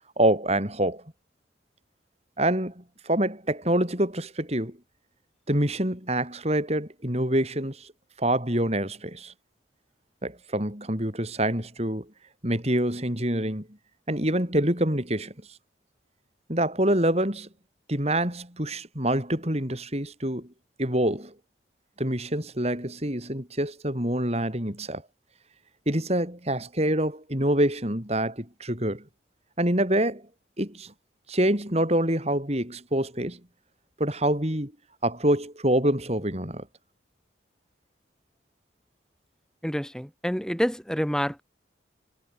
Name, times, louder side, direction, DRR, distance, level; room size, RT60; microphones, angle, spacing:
voice 1, 0.2-1.0 2.4-4.8 5.5-7.9 8.2-9.3 10.2-12.1 12.4-13.7 14.1-15.3 16.5-17.5 17.9-20.5 20.8-21.3 22.0-25.0 25.9-29.0 29.6-30.2 30.6-30.9 31.3-33.4 34.0-34.7 35.0-36.7, right 1 dB, 35° right, 5.6 m, -26 dB
voice 2, 39.6-41.4, equal, 5° left, 2.3 m, -28 dB
head